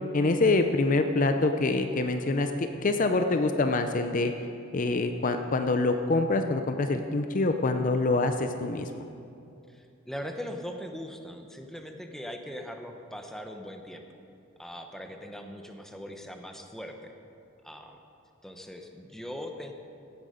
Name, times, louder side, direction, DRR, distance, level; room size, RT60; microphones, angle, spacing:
voice 1, 0.1-4.3 4.7-9.1, left 3 dB, 40° left, 7 dB, 0.5 m, -25 dB
voice 2, 9.7-14.0 14.6-17.1 17.6-18.0 18.4-19.7, equal, ahead, 4 dB, 0.8 m, -40 dB
16.0 x 9.5 x 5.1 m, 2.6 s
head